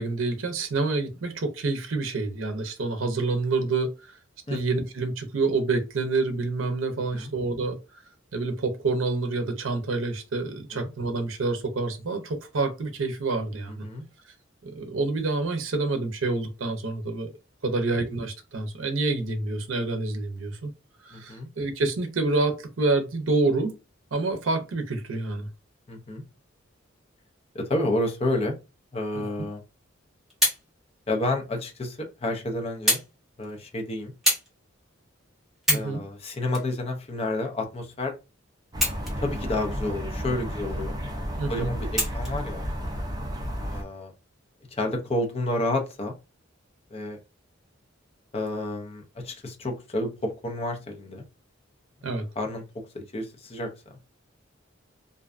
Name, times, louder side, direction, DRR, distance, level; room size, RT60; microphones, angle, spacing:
voice 1, 0.0-3.9 4.5-7.8 8.3-13.8 14.6-17.3 17.6-20.7 21.0-23.7 24.1-25.5 29.1-29.5 35.7-36.0 41.4-41.7 52.0-52.3, right 3 dB, 80° right, 0.5 m, -27 dB
voice 2, 21.1-21.5 25.9-26.2 27.5-28.5 28.9-29.6 31.1-33.0 33.4-34.1 35.7-38.1 39.2-42.7 43.6-44.1 44.7-46.1 46.9-47.2 48.3-51.2 52.4-52.6 52.9-53.7, left 2 dB, 30° left, 0.5 m, -30 dB
sound 1, 29.9-30.6 31.5-31.6 32.9-33.1 33.4-33.7 34.2-34.5 35.0-35.1 35.5-35.9 36.5-37.5 38.7-39.4 39.8-39.9 41.9-42.4 43.3-43.4, equal, ahead, 0.9 m, -26 dB
sound 2, 38.7-43.8, equal, 20° right, 0.5 m, -32 dB
2.6 x 2.2 x 2.4 m
head